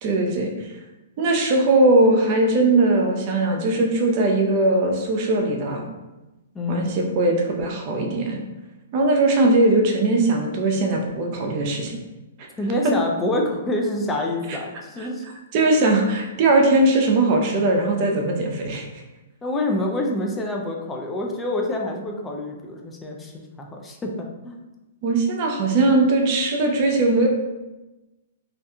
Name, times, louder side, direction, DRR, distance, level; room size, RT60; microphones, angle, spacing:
voice 1, 0.0-0.5 1.2-5.9 6.7-8.4 8.9-12.0 12.4-12.5 14.5-14.6 15.0-15.1 15.5-18.9 25.0-27.3, right 2 dB, 45° right, 1 dB, 0.5 m, -20 dB
voice 2, 6.5-6.9 12.6-15.2 19.4-24.6, left 1 dB, 15° left, 1 dB, 0.4 m, -27 dB
2.5 x 2.2 x 2.7 m, 1.1 s
hypercardioid pair, 125°, 0 cm